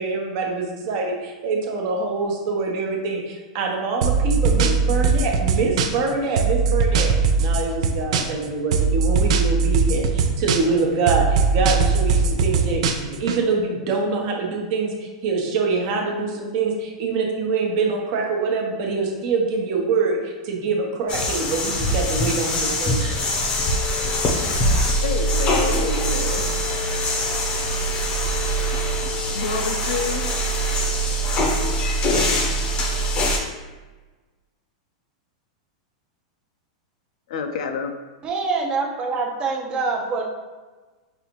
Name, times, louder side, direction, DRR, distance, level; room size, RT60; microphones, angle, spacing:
voice 1, 0.0-7.1 7.4-23.2, right 4 dB, 50° right, 0 dB, 0.9 m, -25 dB
sound 1, 4.0-6.1 6.4-8.4 8.7-10.8 11.1-13.4, right 5 dB, 70° right, 0.4 m, -20 dB
sound 2, 21.1-33.4, equal, 30° left, 0.7 m, -23 dB
voice 2, 25.0-26.4 29.3-30.4 37.3-37.9, left 5 dB, 75° left, 6 dB, 0.5 m, -28 dB
voice 3, 38.2-40.2, right 4 dB, 25° right, 1 dB, 0.6 m, -25 dB
5.5 x 2.6 x 3.0 m, 1.3 s
supercardioid pair, 145°, 4 cm